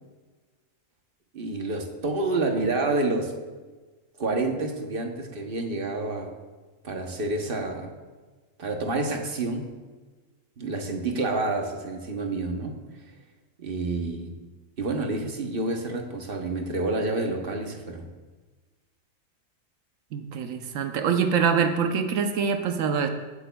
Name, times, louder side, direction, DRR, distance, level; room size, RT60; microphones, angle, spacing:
voice 1, 1.3-3.4 4.2-6.3 6.8-7.9 8.6-9.7 10.6-13.1 13.6-14.3 14.8-18.1, right 2 dB, 45° right, 3 dB, 1.1 m, -28 dB
voice 2, 20.1-23.1, right 6 dB, 90° right, 6 dB, 1.2 m, -24 dB
16.0 x 8.1 x 2.3 m, 1.3 s
omnidirectional pair, 1.3 m